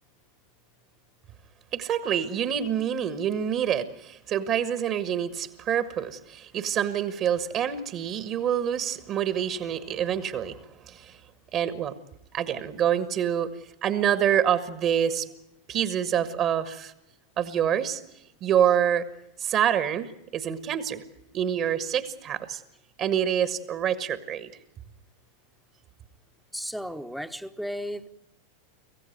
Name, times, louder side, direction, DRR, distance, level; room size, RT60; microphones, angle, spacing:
voice 1, 1.7-10.6 10.9-11.2 11.5-11.9 12.3-13.5 13.8-15.3 15.7-16.9 17.4-18.0 18.4-19.0 19.4-21.0 21.3-22.6 23.0-24.5, right 9 dB, 35° right, 1.4 m, -26 dB
voice 2, 26.5-28.1, equal, ahead, 1.1 m, -34 dB
25.5 x 16.0 x 9.3 m
figure-of-eight pair, 90°, 0 cm